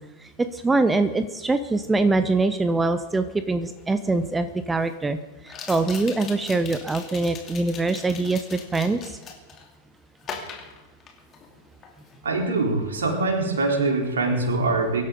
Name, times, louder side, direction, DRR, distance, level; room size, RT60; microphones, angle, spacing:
voice 1, 0.2-5.2 5.4-9.2, right 3 dB, 10° right, 11 dB, 0.8 m, -23 dB
sound 1, 3.8-3.9 5.5-9.7 10.2-11.5 11.8-12.2, left 6 dB, 30° left, 3.0 m, -39 dB
voice 2, 12.2-15.0, right 3 dB, 65° right, 0 dB, 3.9 m, -23 dB
24.0 x 12.5 x 3.9 m, 1.1 s
figure-of-eight pair, 90°, 0 cm